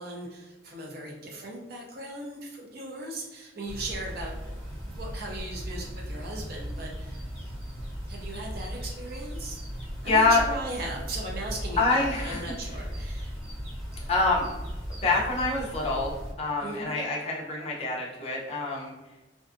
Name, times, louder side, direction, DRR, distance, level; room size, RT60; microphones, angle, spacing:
voice 1, 0.0-4.5 4.8-7.5 8.1-9.6 10.0-13.4 16.6-17.0, right 1 dB, 55° right, -1 dB, 0.5 m, -38 dB
sound 1, 3.7-16.3, equal, 5° right, 1.0 m, -37 dB
voice 2, 10.0-10.4 11.8-12.4 14.1-14.5 15.0-16.1 16.4-18.9, left 3 dB, 35° left, -3 dB, 0.5 m, -25 dB
2.5 x 2.3 x 2.4 m, 1.1 s
head